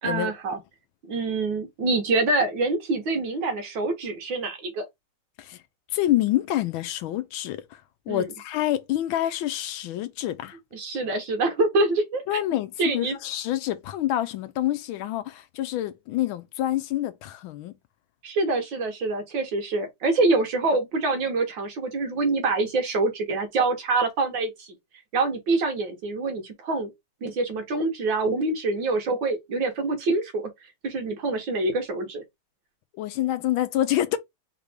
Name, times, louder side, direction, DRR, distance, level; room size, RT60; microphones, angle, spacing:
voice 1, 0.0-0.6 1.1-4.9 8.1-8.3 10.7-12.2 12.8-13.2 18.2-24.7 25.1-26.9 27.2-30.5 30.8-32.2, right 3 dB, 65° right, 1.7 m, -25 dB
voice 2, 5.9-10.6 12.3-17.7 33.0-34.2, left 13 dB, 75° left, 1.3 m, -27 dB
4.0 x 3.6 x 3.4 m
omnidirectional pair, 2.4 m